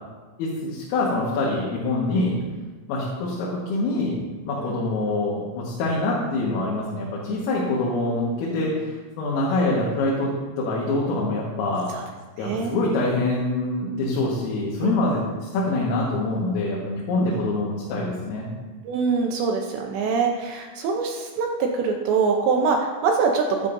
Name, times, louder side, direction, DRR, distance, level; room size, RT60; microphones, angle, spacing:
voice 1, 0.4-2.4 2.9-11.9 12.4-18.5, left 2 dB, 90° left, -5 dB, 4.3 m, -25 dB
voice 2, 12.4-12.7 14.8-14.9 17.2-17.4 18.8-23.7, right 5 dB, 75° right, 2 dB, 2.7 m, -24 dB
14.5 x 12.0 x 2.7 m, 1.3 s
omnidirectional pair, 5.8 m